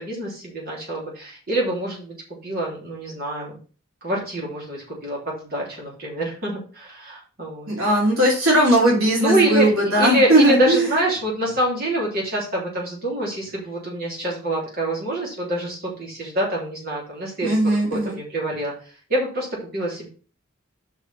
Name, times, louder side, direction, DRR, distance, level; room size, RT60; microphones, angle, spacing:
voice 1, 0.0-2.1 2.4-3.5 4.0-7.7 9.2-17.6 17.9-18.7 19.1-20.1, right 1 dB, 45° right, -3 dB, 3.3 m, -25 dB
voice 2, 7.7-10.9 17.4-18.2, right 1 dB, 85° right, -3 dB, 3.1 m, -18 dB
5.9 x 4.9 x 6.0 m, 0.39 s
head